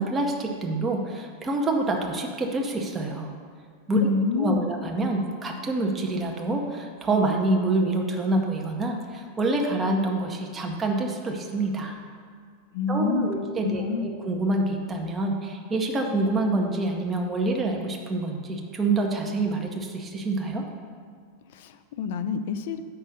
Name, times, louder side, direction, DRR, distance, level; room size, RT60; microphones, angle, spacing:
voice 1, 0.0-3.3 3.9-4.1 4.3-12.0 12.9-20.6, right 2 dB, 15° right, 1 dB, 0.8 m, -27 dB
voice 2, 3.9-4.7 12.7-14.1 21.5-22.8, left 5 dB, 55° left, 10 dB, 0.5 m, -27 dB
6.7 x 5.4 x 6.4 m, 2.1 s
figure-of-eight pair, 90°, 0 cm